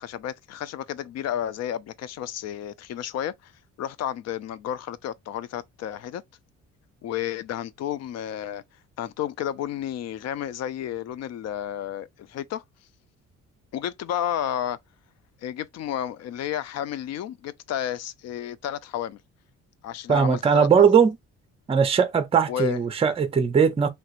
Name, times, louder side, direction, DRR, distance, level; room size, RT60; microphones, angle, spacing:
voice 1, 0.0-3.5 3.8-6.2 7.0-8.6 9.0-12.6 13.7-14.8 15.4-19.2 19.8-20.8 22.5-22.8, left 10 dB, 60° left, 0.4 m, -31 dB
voice 2, 20.1-21.2 21.7-23.9, right 6 dB, 20° right, 0.5 m, -19 dB
3.1 x 2.9 x 2.4 m
cardioid pair, 130°, 30 cm